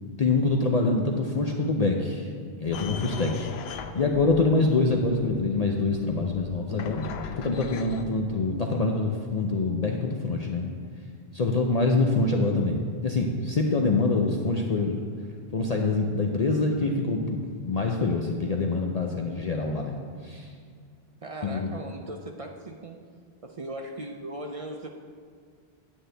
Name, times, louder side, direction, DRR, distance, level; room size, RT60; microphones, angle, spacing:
voice 1, 0.2-2.3 2.6-7.1 7.4-10.7 11.3-15.0 15.5-17.4 17.6-20.0 20.2-20.5 21.4-21.7, left 3 dB, 45° left, 1 dB, 0.6 m, -25 dB
sound 1, 2.7-8.0, left 6 dB, 75° left, 0.8 m, -39 dB
voice 2, 21.2-23.0 23.4-24.9, right 1 dB, 45° right, 3 dB, 0.5 m, -38 dB
9.6 x 9.1 x 3.3 m, 2.1 s
omnidirectional pair, 1.1 m